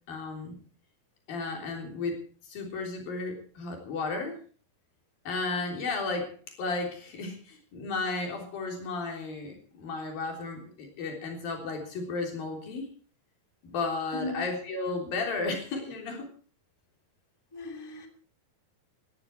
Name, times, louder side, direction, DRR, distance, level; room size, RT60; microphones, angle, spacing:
voice 1, 0.1-0.6 1.3-4.4 5.3-12.9 13.6-16.3, left 3 dB, 70° left, 3 dB, 5.2 m, -34 dB
voice 2, 14.1-14.4 17.5-18.1, left 2 dB, 5° left, 3 dB, 2.3 m, -37 dB
19.5 x 14.0 x 4.6 m, 0.41 s
omnidirectional pair, 4.2 m